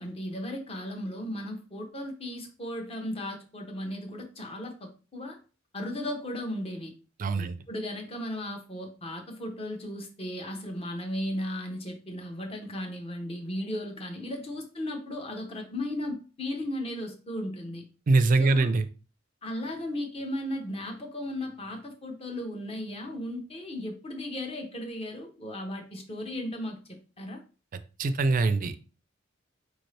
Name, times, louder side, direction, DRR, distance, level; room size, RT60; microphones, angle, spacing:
voice 1, 0.0-5.4 5.7-6.9 7.3-17.8 18.4-18.7 19.4-27.4, left 1 dB, 30° left, 3 dB, 0.7 m, -36 dB
voice 2, 7.2-7.5 18.1-18.8 28.0-28.8, right 3 dB, 45° right, 11 dB, 0.4 m, -23 dB
4.7 x 2.6 x 3.2 m, 0.35 s
head